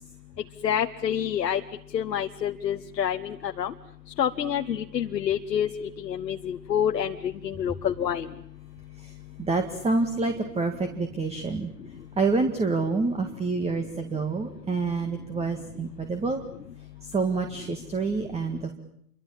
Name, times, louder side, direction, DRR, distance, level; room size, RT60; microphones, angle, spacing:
voice 1, 0.6-1.6 1.9-3.7 4.2-5.7 6.0-8.3, left 9 dB, 80° left, 6 dB, 1.2 m, -27 dB
voice 2, 9.4-11.7 12.2-16.4 17.0-18.7, right 3 dB, 10° right, 7 dB, 2.0 m, -27 dB
28.0 x 24.0 x 7.3 m, 0.70 s
hypercardioid pair, 110°, 49 cm